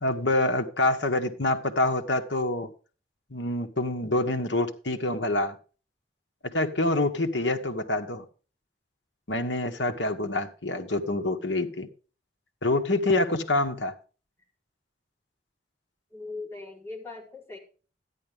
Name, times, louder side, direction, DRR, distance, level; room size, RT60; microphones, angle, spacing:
voice 1, 0.0-2.7 3.3-5.6 6.4-8.2 9.3-11.9 12.6-13.9, left 2 dB, 75° left, 1.5 m, -26 dB
voice 2, 16.1-17.6, left 3 dB, 15° left, 4.2 m, -39 dB
13.0 x 10.5 x 3.6 m
head